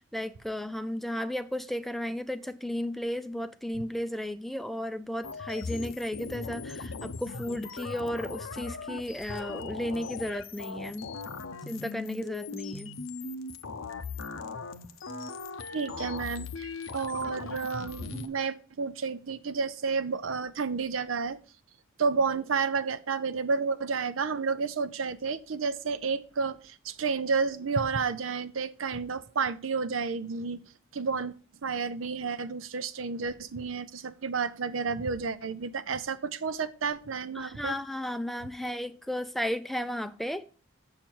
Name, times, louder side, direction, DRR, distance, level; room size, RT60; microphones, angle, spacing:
voice 1, 0.1-11.1 11.7-12.9 37.4-40.5, left 1 dB, ahead, 0.4 m, -34 dB
sound 1, 5.2-18.3, left 4 dB, 85° left, 0.7 m, -39 dB
voice 2, 15.7-21.4 22.0-30.6 30.9-31.3 31.6-37.8, right 5 dB, 85° right, 0.6 m, -31 dB
7.3 x 6.7 x 4.5 m
head